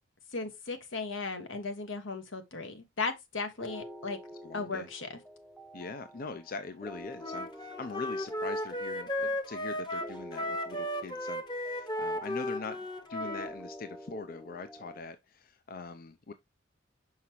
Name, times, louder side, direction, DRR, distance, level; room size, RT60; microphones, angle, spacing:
voice 1, 0.3-4.2 4.5-5.2, left 4 dB, 80° left, 1.4 m, -36 dB
sound 1, 3.6-15.0, equal, ahead, 0.6 m, -49 dB
voice 2, 4.4-4.9 5.7-16.3, left 4 dB, 50° left, 0.5 m, -42 dB
Wind instrument woodwind instrument, 7.2-13.5, left 1 dB, 25° left, 0.9 m, -35 dB
5.7 x 5.6 x 3.0 m
head